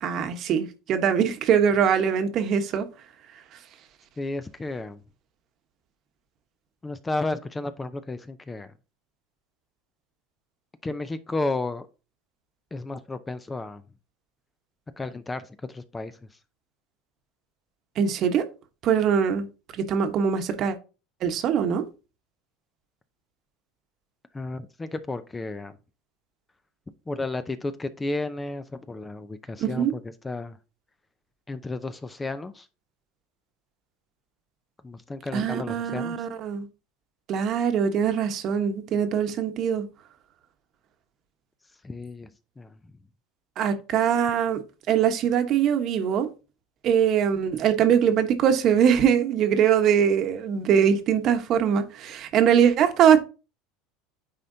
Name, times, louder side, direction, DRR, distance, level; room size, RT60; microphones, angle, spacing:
voice 1, 0.0-2.9 18.0-18.4 18.8-19.5 19.7-20.7 21.2-21.8 29.6-29.9 35.3-36.7 37.3-39.9 43.6-44.6 44.9-46.3 46.8-53.2, right 8 dB, 45° right, 1.1 m, -22 dB
voice 2, 4.2-5.0 6.8-8.7 10.8-11.9 12.7-13.8 15.0-16.1 24.3-25.8 27.1-30.6 31.5-32.7 34.8-36.3 41.8-42.3 42.6-42.8, left 2 dB, 15° left, 0.5 m, -32 dB
9.7 x 4.3 x 2.7 m
supercardioid pair, 115°, 0 cm